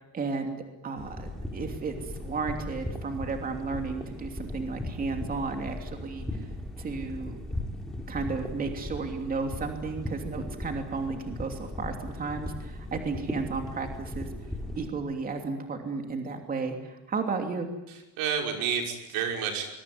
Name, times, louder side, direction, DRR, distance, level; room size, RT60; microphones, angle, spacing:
voice 1, 0.1-6.3 6.8-7.4 8.1-14.3 14.7-17.7, right 4 dB, 25° right, 4 dB, 2.9 m, -33 dB
sound 1, 1.0-14.9, left 1 dB, ahead, 3.8 m, -38 dB
voice 2, 17.9-19.7, right 7 dB, 90° right, 3 dB, 5.9 m, -30 dB
25.0 x 22.5 x 9.7 m, 0.98 s
cardioid pair, 165°, 34 cm